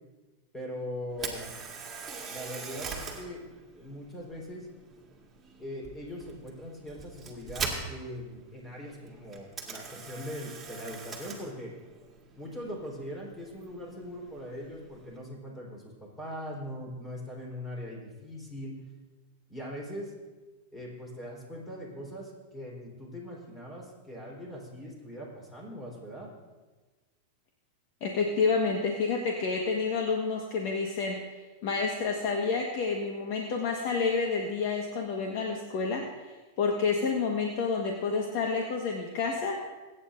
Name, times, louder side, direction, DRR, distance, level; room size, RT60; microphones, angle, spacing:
voice 1, 0.5-1.5 2.3-3.4 3.8-4.7 5.6-11.7 12.4-18.8 19.5-20.1 20.7-26.3, equal, 15° left, -2 dB, 3.9 m, -41 dB
Camera, 1.1-15.2, right 4 dB, 15° right, 2.1 m, -42 dB
voice 2, 28.0-36.0 36.6-39.6, left 4 dB, 55° left, 1 dB, 1.4 m, -29 dB
23.0 x 9.2 x 2.6 m, 1.3 s
supercardioid pair, 135°, 0 cm